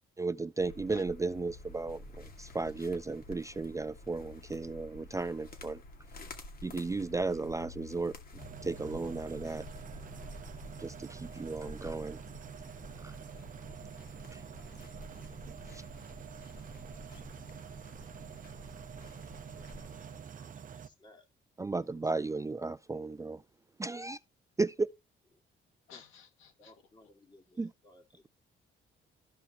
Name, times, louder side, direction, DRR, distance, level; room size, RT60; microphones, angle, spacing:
voice 1, 0.2-5.8 6.6-9.7 10.8-12.2 13.0-13.1 14.3-14.4 15.7-15.8 21.6-23.4 23.8-24.2 24.6-24.9 27.6-27.7, right 3 dB, 15° right, 0.4 m, -35 dB
sound 1, 0.6-20.2, left 2 dB, 45° left, 2.3 m, -50 dB
sound 2, 8.4-20.9, right 7 dB, 40° right, 0.7 m, -47 dB
voice 2, 17.0-17.8 18.4-19.1 19.5-21.3 21.7-22.5 25.9-26.0 26.6-28.3, left 1 dB, 20° left, 2.4 m, -62 dB
voice 3, 25.9-27.1, left 7 dB, 90° left, 2.3 m, -57 dB
14.0 x 5.6 x 3.0 m
cardioid pair, 90°, 20 cm